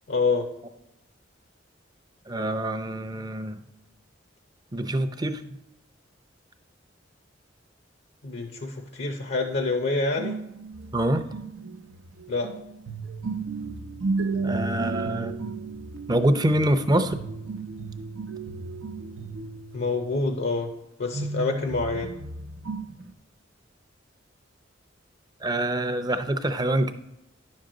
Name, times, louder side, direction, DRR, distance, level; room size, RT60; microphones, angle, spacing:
voice 1, 0.1-0.5 8.2-10.4 12.3-12.5 19.7-20.7 21.0-22.1, left 3 dB, 65° left, 4 dB, 0.7 m, -27 dB
voice 2, 2.3-3.6 4.7-5.4 10.9-11.2 14.4-15.4 16.1-17.2 25.4-26.9, right 1 dB, 20° right, 9 dB, 0.5 m, -25 dB
sound 1, 10.2-20.6 21.1-23.1, right 3 dB, 80° right, 0.6 m, -34 dB
10.5 x 6.4 x 3.8 m, 0.86 s
head